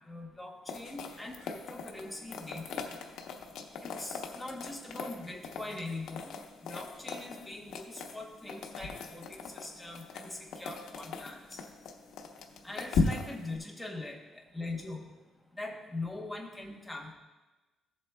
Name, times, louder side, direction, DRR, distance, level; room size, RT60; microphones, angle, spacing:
voice 1, 0.1-2.8 3.8-6.3 6.6-11.6 12.6-15.1 15.6-17.1, left 2 dB, 5° left, -1 dB, 1.0 m, -42 dB
sound 1, 0.7-13.6, left 4 dB, 70° left, 0.9 m, -39 dB
15.0 x 7.5 x 2.3 m, 1.2 s
cardioid pair, 175°, 0 cm